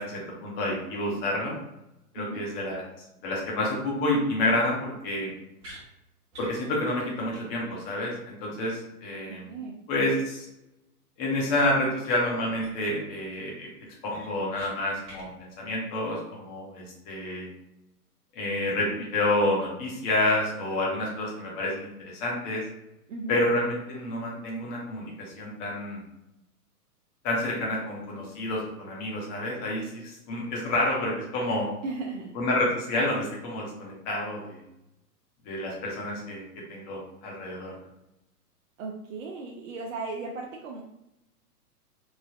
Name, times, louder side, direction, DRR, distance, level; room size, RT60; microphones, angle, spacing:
voice 1, 0.0-1.5 2.1-2.8 3.2-5.3 6.4-9.5 9.9-10.5 11.2-13.7 14.0-17.5 18.3-22.6 23.3-26.0 27.2-31.7 32.3-34.6 35.4-37.8, left 1 dB, 30° left, -3 dB, 0.9 m, -29 dB
sound 1, 5.6-5.8 6.3-6.6 6.9-7.0 7.3-7.4 7.7-7.8 12.0-12.1 12.6-12.9 13.3-13.4 13.8-14.7 15.0-15.3, right 1 dB, 30° right, 1.0 m, -46 dB
voice 2, 9.3-9.8 23.1-23.4 31.8-32.3 38.8-40.8, right 3 dB, 55° right, -1 dB, 0.5 m, -36 dB
3.2 x 2.3 x 2.3 m, 0.88 s
hypercardioid pair, 120°, 46 cm